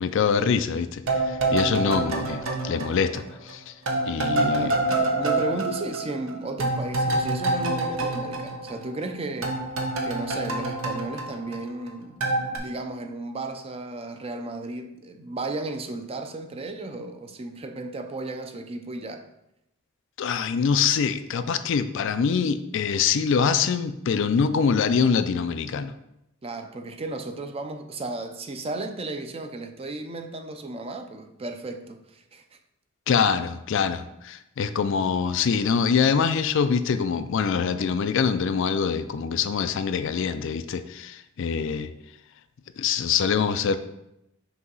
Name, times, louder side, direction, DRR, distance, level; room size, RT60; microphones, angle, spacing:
voice 1, 0.0-1.0 1.3-3.7 4.0-4.7 20.2-25.9 33.1-41.9 42.8-43.8, left 6 dB, 65° left, 0.4 m, -24 dB
sound 1, 1.1-3.5 3.9-9.1 9.4-11.9 12.2-12.6, right 2 dB, 80° right, 0.9 m, -27 dB
voice 2, 4.4-9.6 10.0-19.3 26.4-32.4, right 2 dB, 30° right, 0.5 m, -34 dB
6.0 x 2.9 x 5.4 m
head